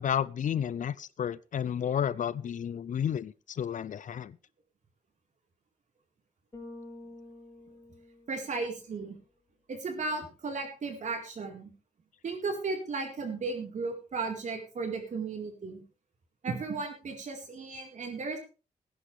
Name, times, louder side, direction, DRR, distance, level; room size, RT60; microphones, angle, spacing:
voice 1, 0.0-4.4, left 9 dB, 65° left, 19 dB, 0.6 m, -31 dB
Bass guitar, 6.5-8.9, left 2 dB, 20° left, 4.9 m, -48 dB
voice 2, 8.3-9.2 9.7-11.7 12.2-15.8 16.4-18.4, right 4 dB, 60° right, 2 dB, 4.3 m, -35 dB
20.0 x 10.0 x 3.4 m, 0.33 s
wide cardioid pair, 150°, 14 cm